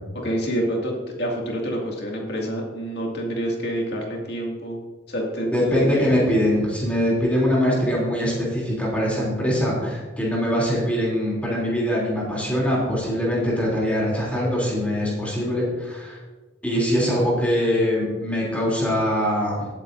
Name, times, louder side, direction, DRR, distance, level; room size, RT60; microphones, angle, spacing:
voice 1, 0.2-0.9 1.2-4.8 5.1-6.2, right 1 dB, 55° left, -1 dB, 2.4 m, -27 dB
voice 2, 5.5-16.2 16.6-19.7, equal, 5° left, -5 dB, 3.3 m, -22 dB
17.5 x 8.2 x 2.7 m, 1.3 s
head